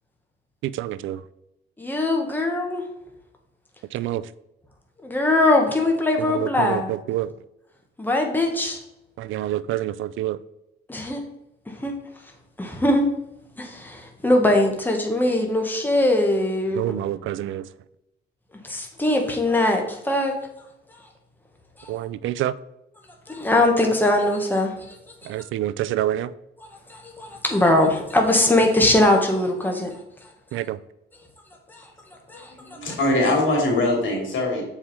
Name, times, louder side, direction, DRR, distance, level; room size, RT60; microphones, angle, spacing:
voice 1, 0.6-1.2 3.9-4.3 6.2-7.3 9.2-10.4 16.7-17.7 21.9-22.5 25.2-26.3 30.5-30.8, right 13 dB, 80° right, 17 dB, 0.4 m, -27 dB
voice 2, 1.8-2.8 5.0-6.9 8.0-8.8 10.9-11.2 11.7-12.0 12.6-13.1 13.6-16.8 18.6-20.4 21.8-21.9 23.3-25.0 26.9-29.9 31.7-31.9 32.3-32.8, left 1 dB, 10° left, 2 dB, 1.5 m, -21 dB
voice 3, 32.3-34.6, left 2 dB, 75° left, 0 dB, 3.0 m, -22 dB
7.3 x 4.9 x 4.3 m, 0.86 s
cardioid pair, 90°, 20 cm